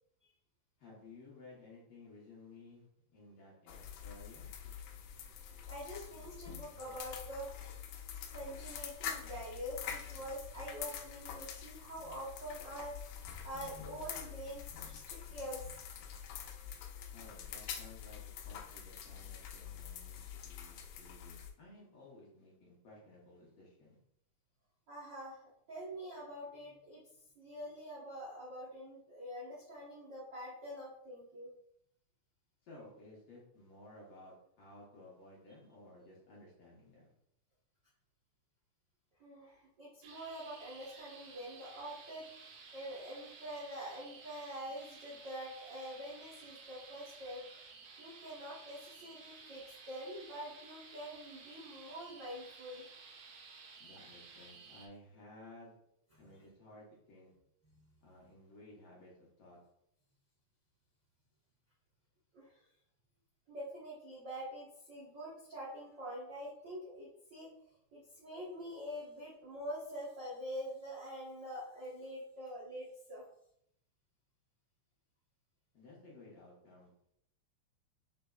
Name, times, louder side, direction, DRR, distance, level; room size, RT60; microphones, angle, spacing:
voice 1, 0.8-4.5 17.1-24.0 32.6-37.1 53.8-55.8 56.2-57.3 58.0-59.6 75.7-77.1, left 2 dB, 60° left, -5 dB, 1.8 m, -56 dB
sound 1, 3.7-21.5, left 8 dB, 85° left, 2.1 m, -46 dB
voice 2, 5.7-7.5 8.3-15.9 24.9-25.4 25.7-27.0 27.3-31.5 39.2-42.3 42.7-47.4 48.0-52.8 56.1-56.2 57.6-57.9 62.3-62.6 63.5-67.5 67.9-73.2, equal, 60° right, -8 dB, 1.1 m, -45 dB
sound 2, 40.0-54.9, right 4 dB, 90° right, 2.4 m, -55 dB
6.5 x 3.4 x 2.3 m, 0.74 s
omnidirectional pair, 3.6 m